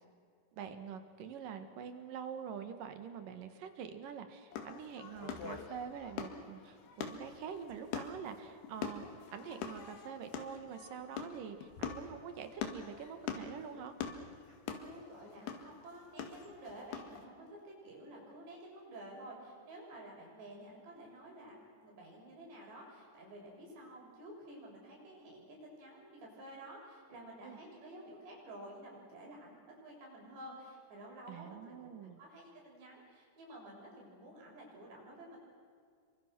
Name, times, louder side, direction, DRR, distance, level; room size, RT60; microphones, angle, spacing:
voice 1, 0.5-9.0 9.3-13.9 27.4-27.6 31.3-32.2, right 7 dB, 60° right, 8 dB, 3.0 m, -45 dB
sound 1, 4.5-17.2, left 7 dB, 75° left, 3.9 m, -44 dB
voice 2, 14.6-21.6 21.8-35.4, right 1 dB, 85° right, -2 dB, 8.9 m, -51 dB
29.5 x 24.0 x 6.2 m, 2.1 s
omnidirectional pair, 4.8 m